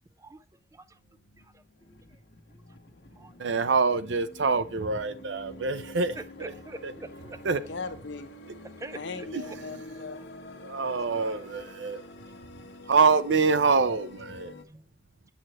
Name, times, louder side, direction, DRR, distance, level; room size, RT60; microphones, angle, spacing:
sound 1, 0.6-14.6, left 2 dB, 70° left, 1.2 m, -47 dB
voice 1, 3.4-6.5 6.8-6.9 7.4-7.6 9.3-9.4 10.6-12.0 12.9-14.5, right 4 dB, 80° right, 0.6 m, -25 dB
voice 2, 6.1-7.4 8.8-9.3 10.8-11.5 12.6-12.7 14.4-14.8, right 2 dB, 15° right, 0.5 m, -44 dB
voice 3, 7.7-8.4 8.9-10.2, left 4 dB, 90° left, 0.9 m, -39 dB
7.7 x 6.4 x 3.0 m
head